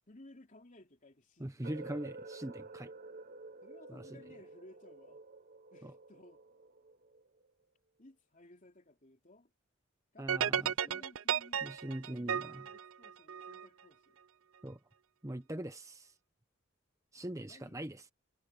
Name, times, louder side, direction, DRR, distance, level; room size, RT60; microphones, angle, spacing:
voice 1, 0.1-2.0 3.6-5.2 5.7-6.4 8.0-9.5 10.1-11.8 12.1-14.2 17.5-17.8, left 1 dB, 40° left, 3.0 m, -58 dB
voice 2, 1.4-2.9 3.9-4.1 5.8-5.9 10.2-11.0 11.6-12.6 14.6-14.8 15.2-16.1 17.1-18.0, right 1 dB, 15° right, 0.9 m, -42 dB
sound 1, 1.6-7.5, right 3 dB, 45° right, 1.1 m, -51 dB
sound 2, 10.3-13.7, right 8 dB, 85° right, 0.6 m, -34 dB
head